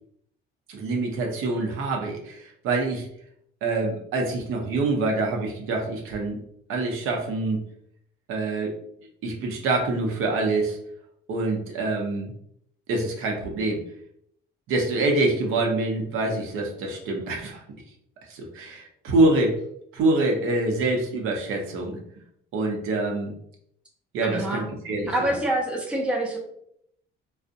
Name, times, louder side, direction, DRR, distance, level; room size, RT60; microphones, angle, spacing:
voice 1, 0.7-3.1 3.6-6.4 6.7-7.6 8.3-8.7 9.2-10.8 11.3-12.3 12.9-13.8 14.7-17.6 18.3-19.6 19.9-22.0 22.5-23.3 24.1-25.4, right 2 dB, 80° right, 1 dB, 0.6 m, -25 dB
voice 2, 24.2-24.6 25.1-26.4, right 1 dB, 5° right, -1 dB, 0.4 m, -26 dB
2.5 x 2.0 x 2.5 m, 0.71 s
cardioid pair, 135°, 21 cm